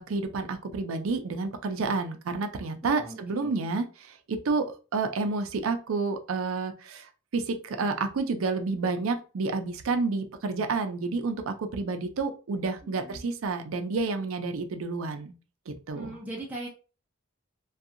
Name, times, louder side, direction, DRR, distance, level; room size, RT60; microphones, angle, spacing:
voice 1, 0.0-15.3 15.7-16.2, right 4 dB, 70° right, 7 dB, 0.4 m, -30 dB
voice 2, 2.8-3.7 12.8-13.3 15.9-16.7, right 1 dB, 10° right, -4 dB, 0.5 m, -40 dB
2.7 x 2.3 x 2.5 m, 0.34 s
head